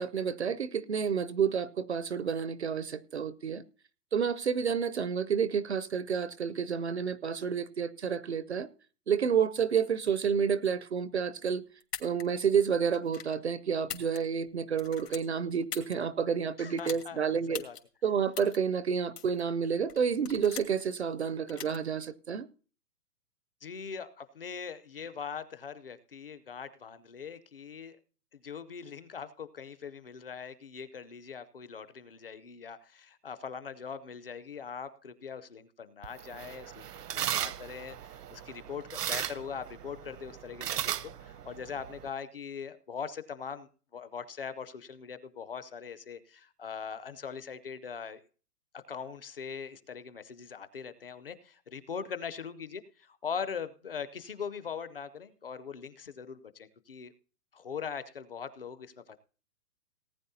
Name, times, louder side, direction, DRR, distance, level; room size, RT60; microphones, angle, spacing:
voice 1, 0.0-3.6 4.1-8.7 9.1-11.6 12.0-17.6 18.0-22.5, right 7 dB, 45° right, 0.5 m, -30 dB
sound 1, 11.8-12.2 12.9-13.3 13.8-14.5 14.8-15.9 16.8-17.0 17.5-17.8 18.3-18.6 19.2-19.4 19.9-20.8 21.5-21.8, left 8 dB, 75° left, 2.7 m, -41 dB
voice 2, 16.6-17.8 23.6-28.0 28.3-48.2 48.7-57.1 57.5-59.2, left 6 dB, 35° left, 0.6 m, -41 dB
sound 2, 36.0-42.1, right 10 dB, 75° right, 0.9 m, -37 dB
18.5 x 9.9 x 2.7 m
hypercardioid pair, 180°, 48 cm